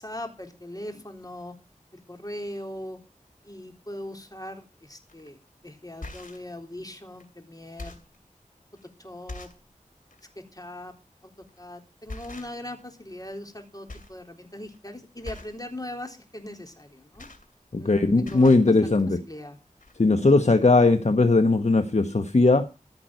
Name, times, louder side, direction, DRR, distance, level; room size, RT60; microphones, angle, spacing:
voice 1, 0.0-1.6 1.9-3.0 3.4-5.4 5.6-8.0 8.8-9.5 10.4-10.9 11.2-11.3 11.6-17.3 17.8-19.6, left 1 dB, 25° left, 3.8 m, -40 dB
sound 1, 5.1-5.3 5.8-6.5 7.2-7.3 7.6-8.2 8.8-8.9 9.3-9.7 10.1-10.2 11.4-11.6 12.1-12.8 13.1-13.6 13.9-14.2 14.5-14.8 15.2-15.6 16.8-17.9 18.2-18.7 19.5-19.6 19.8-19.9, left 2 dB, 80° left, 2.6 m, -42 dB
voice 2, 17.7-19.2 20.0-22.7, left 3 dB, 55° left, 1.1 m, -19 dB
15.0 x 5.9 x 9.2 m
wide cardioid pair, 40°, 14 cm